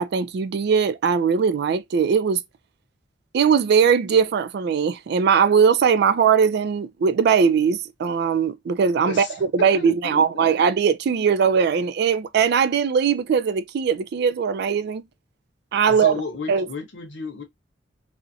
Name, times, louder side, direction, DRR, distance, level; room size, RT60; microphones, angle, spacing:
voice 1, 0.0-2.4 3.3-15.0 15.7-16.1 16.5-16.7, right 6 dB, 60° right, 0.3 m, -20 dB
voice 2, 9.1-10.5 15.9-17.4, left 4 dB, 85° left, 0.8 m, -33 dB
2.5 x 2.0 x 2.6 m
head